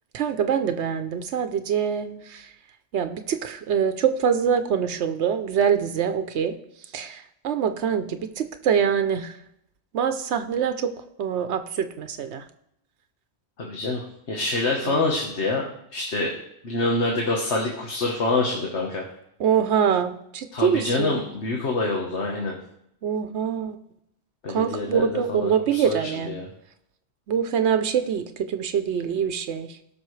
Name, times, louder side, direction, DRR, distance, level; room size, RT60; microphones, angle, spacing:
voice 1, 0.1-2.5 2.9-9.4 9.9-10.9 11.2-12.4 14.8-15.0 19.4-21.3 23.0-23.8 24.5-26.4 27.3-29.8, right 7 dB, 85° right, 8 dB, 1.0 m, -24 dB
voice 2, 13.6-15.6 15.9-16.3 16.6-19.1 20.5-22.5 24.4-26.5, left 2 dB, 85° left, -1 dB, 1.6 m, -26 dB
18.0 x 6.2 x 3.2 m, 0.75 s
omnidirectional pair, 1.1 m